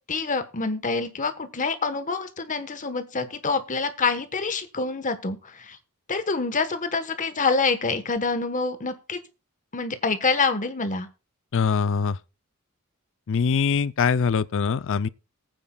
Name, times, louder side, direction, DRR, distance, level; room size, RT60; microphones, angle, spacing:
voice 1, 0.1-5.8 6.1-9.2 9.7-11.1, left 4 dB, 35° left, 1.2 m, -26 dB
voice 2, 11.5-12.2 13.3-15.1, left 6 dB, 60° left, 0.5 m, -23 dB
21.0 x 9.1 x 2.3 m
head